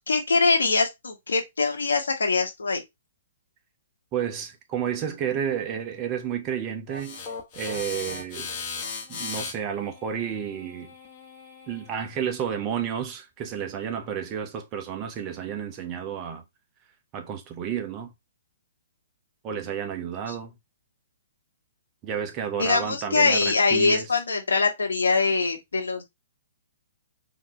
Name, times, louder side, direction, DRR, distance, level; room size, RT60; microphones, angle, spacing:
voice 1, 0.1-2.8 20.3-20.4 22.6-26.0, left 4 dB, 70° left, 1.3 m, -23 dB
voice 2, 4.1-7.2 7.5-8.5 9.1-10.9 11.7-16.4 17.1-18.1 19.4-20.5 22.0-24.1, right 8 dB, 30° right, 0.9 m, -31 dB
sound 1, 6.9-12.1, left 5 dB, 35° left, 1.2 m, -37 dB
3.9 x 2.9 x 3.0 m
figure-of-eight pair, 120°, 0 cm